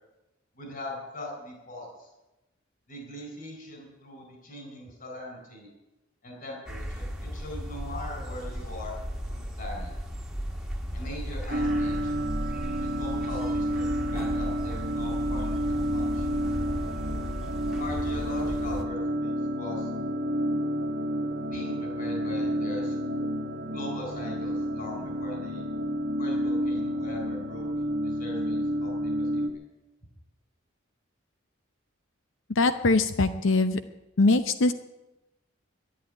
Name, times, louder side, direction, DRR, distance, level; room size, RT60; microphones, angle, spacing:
voice 1, 0.6-2.1 2.9-5.7 6.2-8.9 9.3-9.9 10.9-12.1 12.8-16.3 17.8-19.9 21.5-22.9 23.7-25.6 26.2-27.6 28.0-29.4, left 1 dB, 45° left, 1 dB, 4.4 m, -41 dB
sound 1, 6.7-18.8, equal, 5° right, 1.5 m, -35 dB
sound 2, 11.5-29.5, equal, 55° right, 1.2 m, -30 dB
voice 2, 32.6-33.8 34.2-34.7, left 3 dB, 65° left, 10 dB, 0.6 m, -22 dB
11.5 x 11.0 x 9.8 m, 0.99 s
head